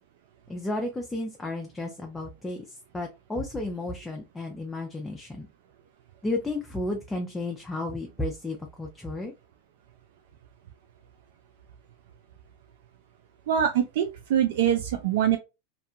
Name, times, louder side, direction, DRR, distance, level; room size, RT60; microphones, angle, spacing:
voice 1, 0.5-2.6 2.9-5.5 6.2-9.3, left 2 dB, 10° left, 0.5 m, -33 dB
voice 2, 13.5-15.4, right 9 dB, 70° right, 0.3 m, -24 dB
2.4 x 2.2 x 2.7 m
supercardioid pair, 120°, 0 cm